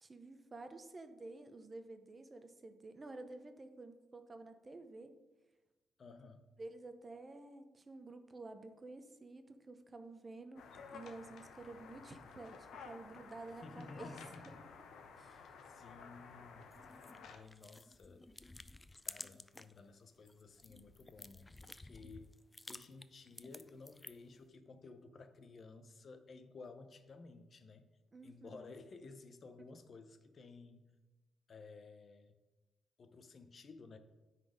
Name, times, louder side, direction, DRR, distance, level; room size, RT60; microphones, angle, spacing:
voice 1, 0.0-5.1 6.6-14.2 15.2-15.5 28.1-28.7, right 2 dB, 25° right, 8 dB, 0.8 m, -51 dB
voice 2, 6.0-6.5 13.6-14.6 15.2-16.7 17.2-18.2 19.1-22.4 22.7-27.9 28.2-30.9 31.5-32.4 33.0-34.0, left 3 dB, 45° left, 9 dB, 0.7 m, -55 dB
sound 1, 10.6-17.4, left 5 dB, 75° left, 0.9 m, -54 dB
sound 2, 16.7-19.8 20.1-24.4, left 2 dB, 15° left, 0.4 m, -53 dB
9.6 x 4.2 x 5.1 m, 1.2 s
cardioid pair, 90°, 0 cm